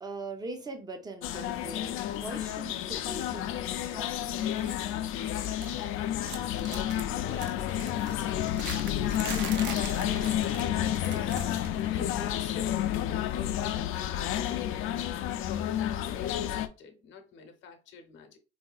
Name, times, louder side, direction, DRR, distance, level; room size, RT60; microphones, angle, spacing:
voice 1, 0.0-4.6 6.6-7.1, right 3 dB, 20° right, 0.6 m, -42 dB
sound 1, 1.2-16.7, left 11 dB, 80° left, 0.5 m, -30 dB
sound 2, 4.4-4.9 5.1-5.9 6.2-11.8 12.0-12.3 13.4-13.5, right 6 dB, 60° right, 0.7 m, -43 dB
voice 2, 6.1-9.8 10.3-18.4, left 5 dB, 65° left, 0.8 m, -46 dB
4.2 x 2.7 x 2.3 m
cardioid pair, 140°, 21 cm